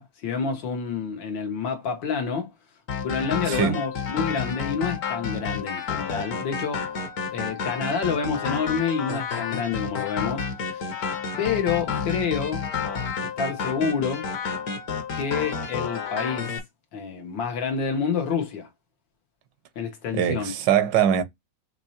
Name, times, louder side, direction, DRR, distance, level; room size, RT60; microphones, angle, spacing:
voice 1, 0.0-2.5 3.0-6.9 7.3-11.1 11.4-12.7 13.2-14.3 15.1-16.5 16.9-18.7 19.8-20.5, left 6 dB, 85° left, 1.9 m, -28 dB
sound 1, 2.9-16.6, left 6 dB, 55° left, 1.5 m, -30 dB
voice 2, 3.5-3.8 20.1-21.2, right 9 dB, 80° right, 1.4 m, -22 dB
5.9 x 3.1 x 2.8 m
omnidirectional pair, 2.0 m